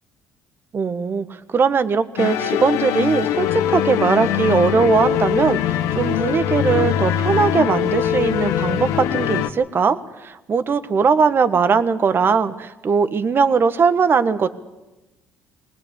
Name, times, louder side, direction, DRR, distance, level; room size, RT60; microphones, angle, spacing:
voice 1, 0.7-14.5, right 5 dB, 45° right, 12 dB, 1.4 m, -19 dB
sound 1, 2.2-9.5, left 10 dB, 85° left, 1.2 m, -22 dB
20.5 x 19.5 x 8.2 m, 1.0 s
supercardioid pair, 80°, 5 cm